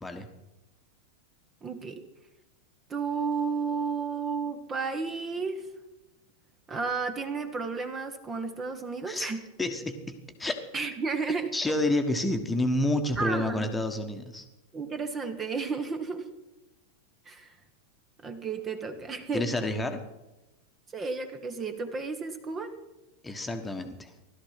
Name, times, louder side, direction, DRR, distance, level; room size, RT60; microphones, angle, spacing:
voice 1, 1.6-2.0 2.9-5.7 6.7-9.4 10.7-11.7 13.2-13.7 14.7-16.3 17.2-17.5 18.2-19.5 20.9-22.7, right 4 dB, 20° right, 8 dB, 1.4 m, -32 dB
voice 2, 9.6-10.1 10.4-10.6 11.5-14.4 19.3-20.0 23.2-24.1, left 1 dB, 10° left, 5 dB, 1.5 m, -29 dB
16.5 x 12.5 x 5.9 m, 1.0 s
figure-of-eight pair, 90°, 0 cm